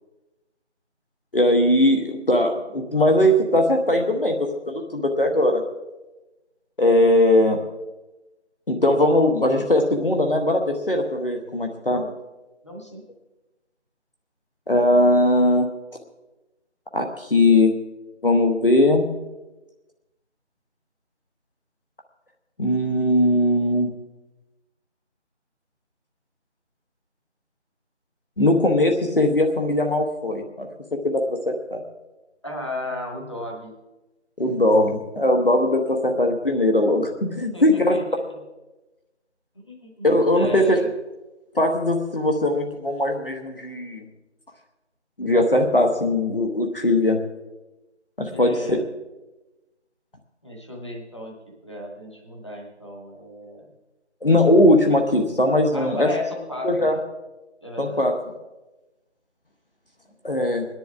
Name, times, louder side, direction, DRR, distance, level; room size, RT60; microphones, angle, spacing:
voice 1, 1.3-5.6 6.8-7.6 8.7-12.0 14.7-15.7 16.9-17.7 18.2-19.1 22.6-23.9 28.4-30.7 31.0-31.8 34.4-38.0 40.0-40.8 41.5-44.0 45.2-47.2 48.2-48.8 54.2-56.1 56.6-57.0 57.8-58.1 60.2-60.7, left 1 dB, 50° left, 3 dB, 1.2 m, -20 dB
voice 2, 12.6-13.0 32.4-33.7 37.5-38.4 39.6-40.1 40.4-40.9 48.3-48.9 50.4-51.3 51.6-53.7 55.7-56.9 57.6-58.0, left 1 dB, 25° left, -1 dB, 1.3 m, -34 dB
24.0 x 10.5 x 3.5 m, 1.1 s
figure-of-eight pair, 175°, 35 cm